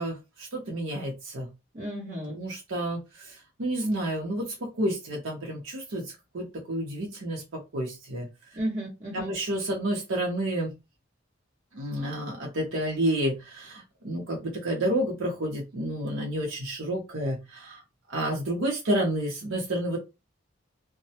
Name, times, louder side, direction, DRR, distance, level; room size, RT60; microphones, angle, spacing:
voice 1, 0.0-1.5 2.3-4.5 4.8-6.0 6.3-7.4 7.7-8.3 9.1-10.7 11.7-17.8 18.1-20.0, right 1 dB, 85° right, -2 dB, 0.7 m, -30 dB
voice 2, 1.7-2.4 8.5-9.3, right 1 dB, 40° right, -8 dB, 0.9 m, -33 dB
2.2 x 2.0 x 2.8 m, 0.24 s
head